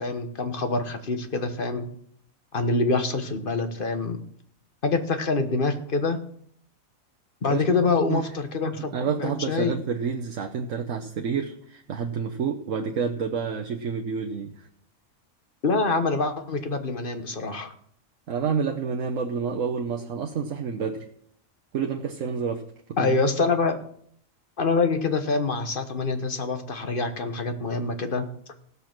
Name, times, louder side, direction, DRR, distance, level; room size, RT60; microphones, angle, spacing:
voice 1, 0.0-1.9 2.5-4.2 4.8-6.2 7.4-9.8 15.6-17.7 23.0-23.8 24.6-28.2, left 3 dB, 40° left, 8 dB, 1.3 m, -25 dB
voice 2, 8.9-14.6 18.3-21.0 21.7-22.6 23.0-23.1, right 6 dB, 70° right, 2 dB, 1.3 m, -29 dB
16.5 x 6.9 x 6.0 m, 0.65 s
omnidirectional pair, 1.4 m